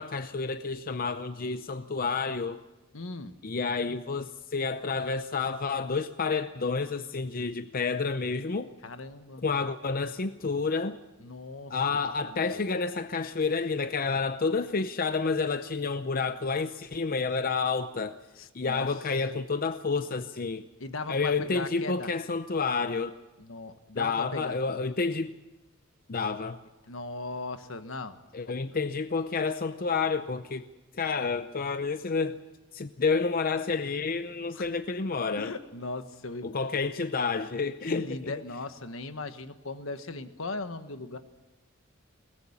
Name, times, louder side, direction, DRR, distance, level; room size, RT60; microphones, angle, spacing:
voice 1, 0.0-2.6 3.4-8.7 9.4-11.0 11.7-18.2 18.5-20.7 21.1-23.1 23.9-25.3 26.1-26.6 28.3-30.7 30.9-32.4 32.7-35.5 36.4-38.3, left 4 dB, 45° left, 10 dB, 0.7 m, -29 dB
voice 2, 2.9-3.4 8.8-9.4 11.2-11.7 12.3-12.7 18.4-18.9 20.8-22.1 23.4-24.5 26.9-28.2 28.4-28.6 34.5-34.7 35.4-36.5 37.9-41.2, left 3 dB, 75° left, 9 dB, 1.4 m, -38 dB
22.5 x 19.5 x 7.3 m, 1.1 s
head